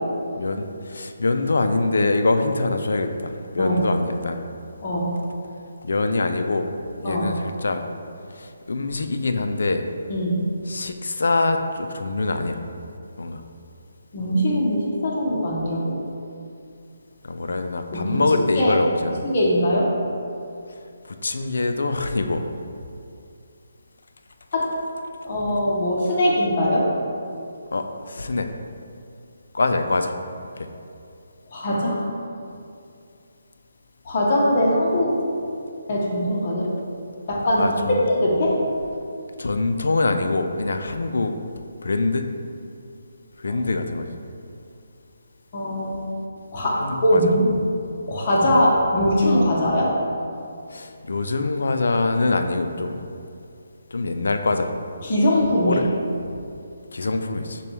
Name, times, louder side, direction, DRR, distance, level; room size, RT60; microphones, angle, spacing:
voice 1, 0.4-4.4 5.8-6.7 7.0-7.8 8.3-9.9 10.7-12.6 13.2-13.4 17.2-19.2 21.0-22.5 27.7-28.5 29.5-30.1 30.6-30.7 37.6-38.1 39.4-41.3 41.8-42.3 43.4-44.1 46.8-47.2 50.7-53.0 53.9-54.7 55.6-55.9 56.9-57.6, left 3 dB, 75° left, 7 dB, 0.3 m, -24 dB
voice 2, 4.8-5.1 7.0-7.3 10.1-10.4 14.1-16.0 17.9-18.2 18.6-18.7 19.2-19.9 24.5-24.7 25.2-26.9 31.5-32.0 34.0-35.6 35.9-36.7 37.3-37.7 38.1-38.6 45.5-46.0 46.5-47.5 48.1-49.9 55.0-55.8, equal, 40° left, -5 dB, 0.8 m, -21 dB
6.6 x 2.3 x 3.1 m, 2.5 s
hypercardioid pair, 155°, 0 cm